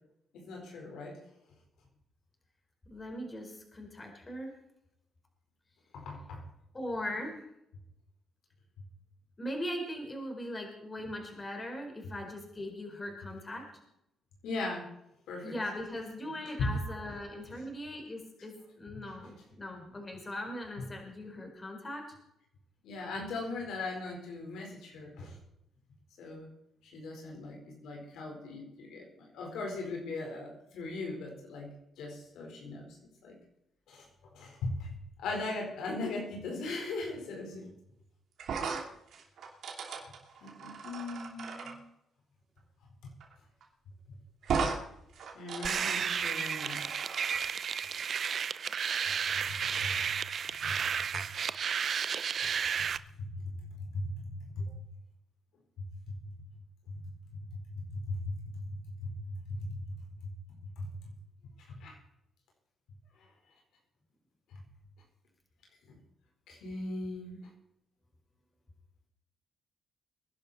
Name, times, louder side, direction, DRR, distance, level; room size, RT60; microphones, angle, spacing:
voice 1, 0.3-1.2 5.9-6.4 14.4-14.9 15.3-15.5 16.2-16.3 16.6-16.8 18.9-19.3 22.8-25.4 26.2-26.5 26.8-32.9 33.2-33.4 33.9-34.9 35.2-37.7 40.4-41.8 45.3-46.9 49.8-50.0 50.6-50.7 53.3-53.6 53.9-54.7 55.8-55.9 56.9-57.1 57.7-59.8 60.2-60.3 60.8-60.9 61.7-62.0 65.9-66.0 66.5-67.4, left 2 dB, 80° left, 1 dB, 4.4 m, -39 dB
voice 2, 2.9-4.5 6.7-7.4 9.4-13.7 15.4-22.0, left 1 dB, 25° left, 2 dB, 4.8 m, -40 dB
sound 1, 38.4-41.7 43.2-43.3 43.6-43.7 44.4-44.8 45.1-47.4, right 5 dB, 65° right, 2.9 m, -37 dB
sound 2, 45.6-53.0, right 7 dB, 50° right, 0.6 m, -32 dB
22.0 x 11.0 x 4.3 m, 0.81 s
cardioid pair, 90°, 0 cm